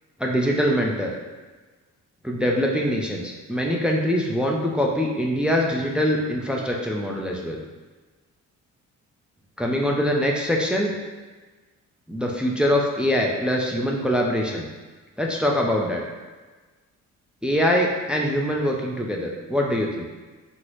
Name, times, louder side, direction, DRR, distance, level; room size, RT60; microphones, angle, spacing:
voice 1, 0.2-1.1 2.2-7.6 9.6-10.9 12.1-14.7 15.2-16.0 17.4-20.1, equal, 5° right, -1 dB, 0.4 m, -23 dB
3.9 x 2.0 x 3.0 m, 1.3 s
cardioid pair, 90°, 30 cm